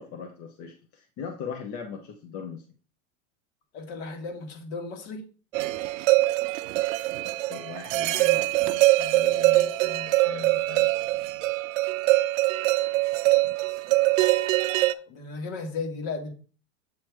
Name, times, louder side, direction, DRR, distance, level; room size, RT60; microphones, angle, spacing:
voice 1, 0.0-2.6 7.2-10.9, left 7 dB, 35° left, 4 dB, 0.8 m, -40 dB
voice 2, 3.7-5.2 15.1-16.3, left 4 dB, 50° left, 4 dB, 1.8 m, -35 dB
sound 1, 5.5-14.9, right 18 dB, 65° right, 0.6 m, -23 dB
7.7 x 3.0 x 4.7 m, 0.38 s
supercardioid pair, 130°, 41 cm